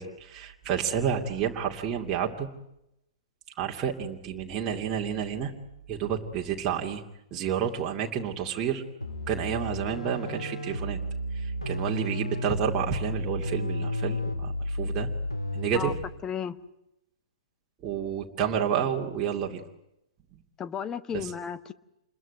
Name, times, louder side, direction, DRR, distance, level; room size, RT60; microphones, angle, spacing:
voice 1, 0.0-2.5 3.6-5.5 5.9-7.0 7.3-8.8 9.3-11.0 11.3-15.1 15.5-15.9 17.8-19.6 21.1-21.3, right 8 dB, 25° right, 2.6 m, -30 dB
sound 1, 9.0-16.2, left 1 dB, 80° left, 3.4 m, -32 dB
voice 2, 16.2-16.6 20.6-21.7, left 7 dB, 20° left, 1.2 m, -33 dB
28.0 x 22.0 x 9.2 m
figure-of-eight pair, 115°, 3 cm